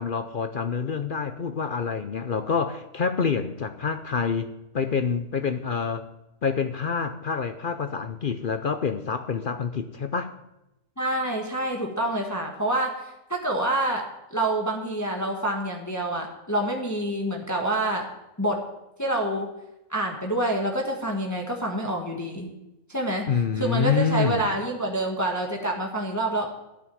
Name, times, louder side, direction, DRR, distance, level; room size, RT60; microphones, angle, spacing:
voice 1, 0.0-6.1 6.4-10.3 23.3-24.4, left 6 dB, 50° left, 9 dB, 0.6 m, -27 dB
voice 2, 11.0-18.1 18.4-18.6 19.0-19.5 19.9-22.5 22.9-23.3 23.6-26.5, right 1 dB, 10° left, 1 dB, 1.4 m, -27 dB
12.5 x 6.1 x 9.4 m, 0.91 s
omnidirectional pair, 1.5 m